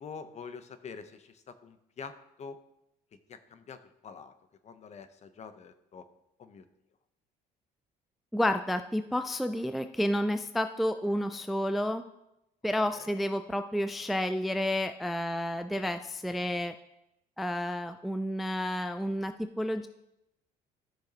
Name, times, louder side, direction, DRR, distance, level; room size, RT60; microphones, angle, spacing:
voice 1, 0.0-2.6 3.3-4.3 4.6-6.0 6.4-6.7 12.9-13.1, left 5 dB, 40° left, 10 dB, 0.7 m, -46 dB
voice 2, 8.3-12.0 12.6-16.7 17.4-19.9, left 1 dB, ahead, 8 dB, 0.3 m, -30 dB
13.5 x 6.3 x 2.8 m, 0.84 s
cardioid pair, 110°, 17 cm